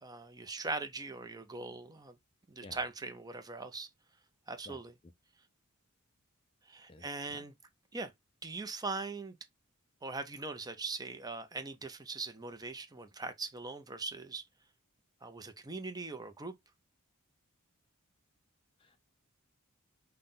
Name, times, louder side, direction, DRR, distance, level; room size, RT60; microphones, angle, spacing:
voice 1, 0.0-2.1 2.5-3.9 4.5-4.9 6.7-7.5 7.9-8.1 8.4-9.4 10.0-14.4 15.2-16.5, right 3 dB, 20° right, 0.6 m, -41 dB
voice 2, 6.9-7.5 18.8-19.0, left 2 dB, 25° left, 0.4 m, -53 dB
5.8 x 2.2 x 3.7 m
head